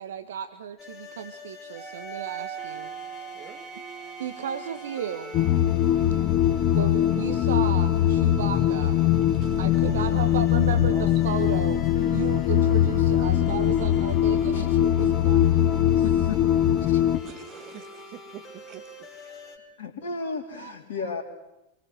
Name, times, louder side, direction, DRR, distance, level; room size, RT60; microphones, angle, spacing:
voice 1, 0.0-2.9 4.2-5.3 6.7-9.0 9.6-11.8 12.1-16.0 20.6-20.7 21.0-21.1, right 8 dB, 60° right, 10 dB, 1.4 m, -34 dB
sound 1, 0.8-19.6, left 2 dB, 20° left, 4.7 m, -43 dB
Wind instrument woodwind instrument, 1.7-5.6, right 9 dB, 10° right, 7.9 m, -40 dB
voice 2, 3.3-3.8 9.4-10.4 10.9-11.9 17.2-18.8, right 10 dB, 40° right, 8 dB, 2.3 m, -45 dB
sound 2, 5.3-17.2, left 11 dB, 35° left, 1.3 m, -22 dB
voice 3, 14.5-14.8 16.0-16.4 16.9-17.0 19.8-21.2, left 5 dB, 60° left, 3 dB, 4.1 m, -33 dB
26.5 x 23.0 x 6.3 m, 0.90 s
figure-of-eight pair, 90°, 0 cm